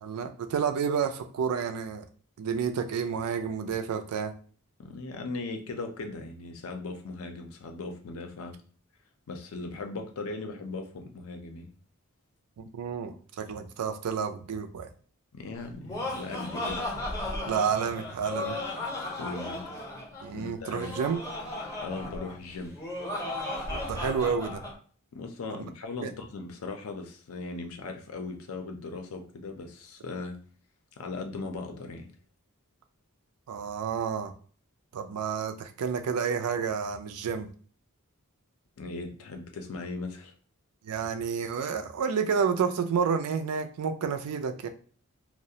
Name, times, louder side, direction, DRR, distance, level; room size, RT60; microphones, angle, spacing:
voice 1, 0.0-2.1 2.4-4.3 12.6-14.9 17.5-18.6 20.2-21.2 23.7-24.6 25.5-25.7 26.0-26.1 33.5-34.3 34.9-37.5 40.8-44.7, right 6 dB, 80° right, 7 dB, 0.4 m, -30 dB
voice 2, 4.8-8.6 9.3-11.7 15.3-16.8 19.2-19.6 20.3-20.9 21.8-22.8 25.1-30.4 31.0-32.1 38.8-40.3, left 3 dB, 70° left, 4 dB, 0.5 m, -38 dB
Laughter, 15.6-24.7, left 2 dB, 15° left, 0.6 m, -35 dB
2.4 x 2.1 x 2.7 m, 0.43 s
head